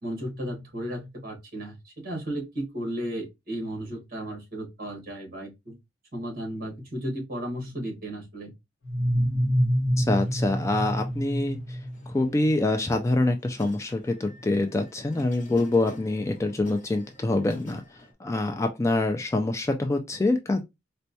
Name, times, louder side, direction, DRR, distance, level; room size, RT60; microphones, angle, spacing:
voice 1, 0.0-5.8 6.1-8.5, right 1 dB, 50° right, 1.4 m, -34 dB
sound 1, 8.8-12.5, equal, 75° left, 1.1 m, -26 dB
voice 2, 10.0-11.8 12.1-17.8 18.2-20.6, left 2 dB, 15° left, 0.3 m, -25 dB
sound 2, 10.1-18.1, equal, 40° left, 1.0 m, -48 dB
4.3 x 2.2 x 2.7 m
head